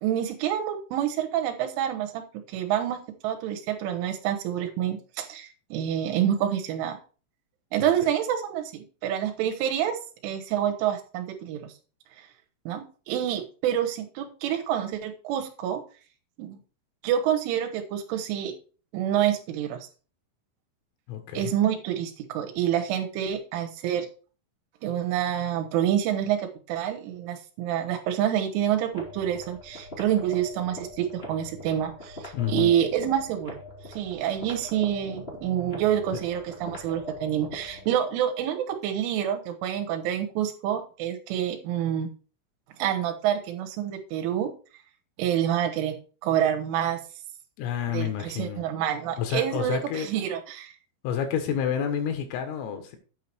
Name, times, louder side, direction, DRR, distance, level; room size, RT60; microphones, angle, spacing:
voice 1, 0.0-2.2 2.5-3.0 3.2-7.0 7.7-11.7 12.2-12.3 12.7-15.8 16.4-16.6 17.0-18.5 18.9-19.8 21.3-24.1 24.8-33.6 33.9-42.1 42.8-44.5 45.2-46.0 46.2-47.0 47.9-50.7, right 10 dB, 75° right, 5 dB, 3.5 m, -27 dB
voice 2, 21.1-21.5 32.3-32.8 47.6-48.6 49.2-50.1 51.0-53.0, left 8 dB, 80° left, 6 dB, 4.0 m, -29 dB
sound 1, 28.9-37.9, left 1 dB, 45° left, 0.7 m, -42 dB
9.3 x 5.8 x 4.5 m, 0.36 s
omnidirectional pair, 5.9 m